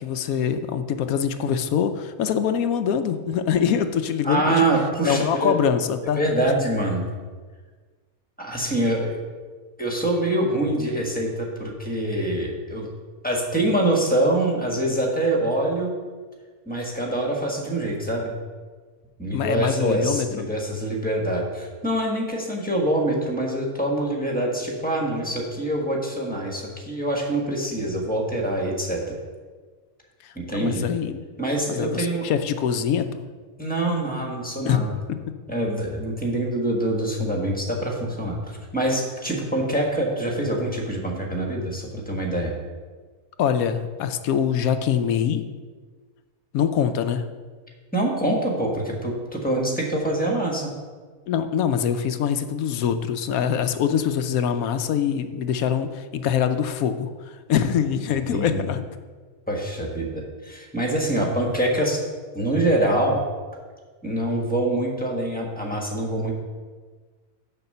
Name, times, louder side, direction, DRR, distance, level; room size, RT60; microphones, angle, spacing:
voice 1, 0.0-4.7 5.1-6.2 19.3-20.4 30.2-31.2 31.7-33.3 34.6-34.8 35.1-35.2 43.4-45.4 46.5-47.2 51.3-57.1 57.5-58.8, left 8 dB, 70° left, 9 dB, 1.0 m, -24 dB
voice 2, 4.2-5.5 6.1-7.1 8.4-9.2 9.8-12.9 13.2-15.9 16.6-18.3 19.2-29.1 30.3-30.8 31.4-32.2 33.6-34.9 35.5-42.5 47.9-50.7 58.3-58.6 59.5-62.0 62.3-63.2 64.0-66.3, right 1 dB, 5° left, -1 dB, 1.4 m, -25 dB
6.8 x 5.7 x 6.7 m, 1.5 s
omnidirectional pair, 1.6 m